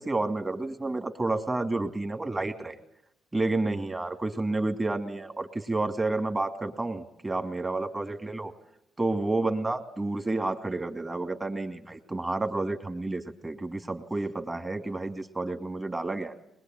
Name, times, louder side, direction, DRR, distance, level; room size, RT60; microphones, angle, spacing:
voice 1, 0.0-2.8 3.3-8.5 9.0-16.3, right 2 dB, 20° right, 7 dB, 2.7 m, -30 dB
22.0 x 21.0 x 9.3 m, 0.76 s
cardioid pair, 90°, 0 cm